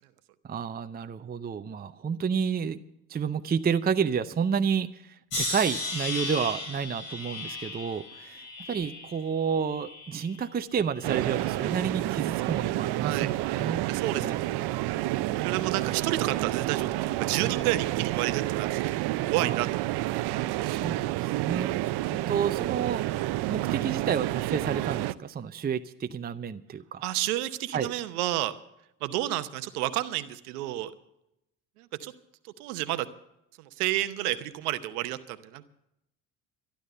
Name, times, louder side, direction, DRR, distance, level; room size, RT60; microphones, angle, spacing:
voice 1, 0.4-2.8 3.1-13.9 14.1-14.4 19.4-19.6 20.6-23.0 23.5-27.1 27.7-27.9, right 7 dB, 20° right, 9 dB, 0.6 m, -30 dB
sound 1, 5.3-10.5 10.9-11.6 12.3-12.6, left 2 dB, 70° left, 6.3 m, -36 dB
sound 2, 11.0-25.1, right 16 dB, 60° right, 0.7 m, -29 dB
voice 2, 13.0-13.3 13.9-14.6 15.4-20.0 27.0-28.6 29.0-30.9 31.8-32.1 32.4-33.1 33.6-35.6, right 15 dB, 85° right, 12 dB, 0.9 m, -31 dB
12.5 x 11.5 x 6.7 m, 0.81 s
hypercardioid pair, 65°, 43 cm